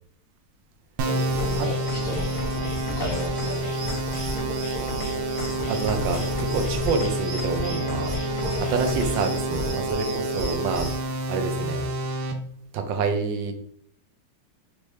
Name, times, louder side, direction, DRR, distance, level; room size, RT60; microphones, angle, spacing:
voice 1, 1.0-2.4 2.9-3.8 8.5-8.7, left 1 dB, 55° left, -3 dB, 0.9 m, -35 dB
sound 1, 1.0-12.3, right 1 dB, 85° right, 1.5 m, -30 dB
sound 2, 1.1-11.0, left 1 dB, 45° right, 1.6 m, -32 dB
sound 3, 1.4-9.4, left 2 dB, 80° left, 1.5 m, -38 dB
voice 2, 4.6-5.2 5.6-11.9 12.7-13.5, right 4 dB, 70° right, 6 dB, 1.3 m, -28 dB
4.4 x 2.9 x 3.2 m, 0.65 s
omnidirectional pair, 2.4 m